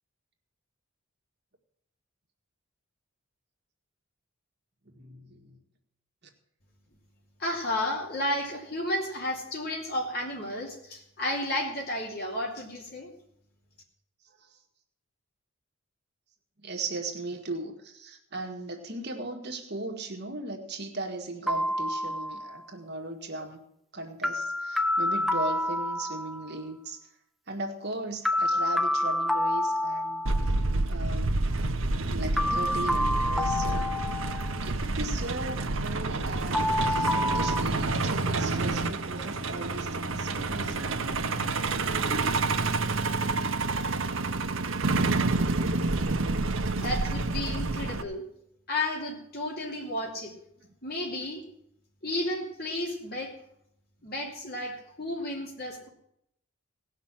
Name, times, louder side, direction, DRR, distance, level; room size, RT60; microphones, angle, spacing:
voice 1, 4.8-5.6 14.2-14.6 16.6-23.6 23.9-27.1 27.5-30.2 30.8-31.3 32.0-33.9 34.6-40.9, right 2 dB, 50° right, 2 dB, 1.7 m, -37 dB
voice 2, 7.4-13.1 46.8-48.2 48.7-50.3 50.8-51.4 52.0-53.3 54.0-55.9, left 1 dB, 45° left, 0 dB, 2.8 m, -32 dB
sound 1, 21.5-22.6 24.2-26.5 28.2-30.6 32.4-34.7 36.5-37.6, left 1 dB, ahead, 0.5 m, -28 dB
Truck, 30.3-48.0, right 3 dB, 65° right, 0.8 m, -28 dB
18.0 x 6.0 x 7.4 m, 0.75 s
head